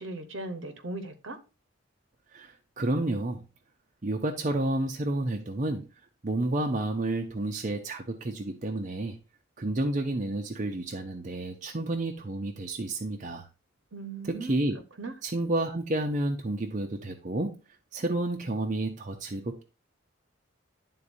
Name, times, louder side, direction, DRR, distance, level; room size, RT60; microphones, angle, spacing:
voice 1, 0.0-1.4 13.9-14.6 15.0-15.1, right 2 dB, 70° right, 0.9 m, -38 dB
voice 2, 2.3-3.4 4.0-5.9 6.2-9.2 9.6-13.5 14.3-14.8 15.2-17.5 17.9-19.6, right 2 dB, 40° right, 0.6 m, -30 dB
11.0 x 3.8 x 2.6 m
head